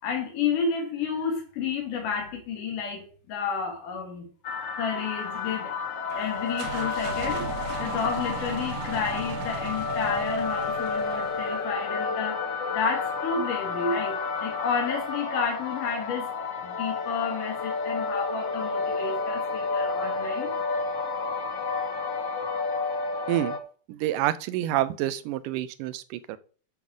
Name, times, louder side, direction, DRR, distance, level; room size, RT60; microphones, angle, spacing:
voice 1, 0.0-4.3 4.8-5.7 6.1-16.4 16.6-20.6, left 5 dB, 75° left, 3.8 m, -31 dB
sound 1, 4.4-23.6, left 4 dB, 55° left, 2.2 m, -30 dB
sound 2, 6.1-11.7, right 6 dB, 65° right, 2.1 m, -37 dB
voice 2, 23.9-26.4, right 14 dB, 85° right, 2.3 m, -28 dB
9.6 x 5.5 x 6.2 m
omnidirectional pair, 3.7 m